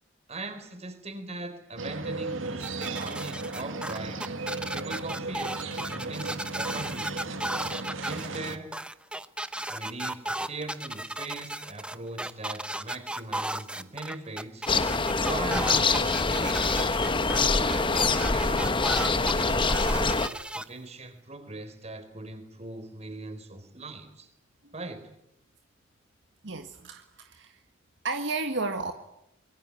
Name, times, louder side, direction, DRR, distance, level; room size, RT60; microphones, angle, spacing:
voice 1, 0.3-4.3 4.7-7.3 8.0-8.7 9.6-14.7 15.2-16.8 17.5-24.3 24.7-25.0, right 2 dB, 35° right, 9 dB, 4.5 m, -40 dB
sound 1, 1.8-8.6, right 3 dB, 80° right, 2.2 m, -35 dB
sound 2, 2.6-20.6, right 1 dB, 5° right, 1.0 m, -35 dB
sound 3, 14.7-20.3, left 3 dB, 25° left, 1.2 m, -25 dB
voice 2, 26.4-27.6 28.0-28.9, right 3 dB, 65° right, 6 dB, 1.7 m, -32 dB
25.5 x 22.5 x 9.9 m, 0.81 s
head